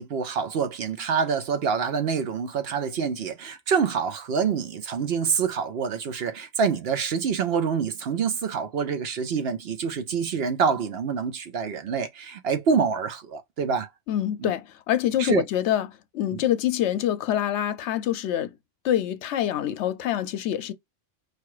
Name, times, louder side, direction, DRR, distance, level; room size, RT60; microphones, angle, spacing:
voice 1, 0.0-13.9 14.4-14.5 15.2-15.4 16.3-16.4, right 6 dB, 60° right, 0.8 m, -26 dB
voice 2, 14.1-18.5 18.8-20.7, left 11 dB, 75° left, 0.8 m, -26 dB
4.8 x 2.4 x 4.7 m
omnidirectional pair, 1.2 m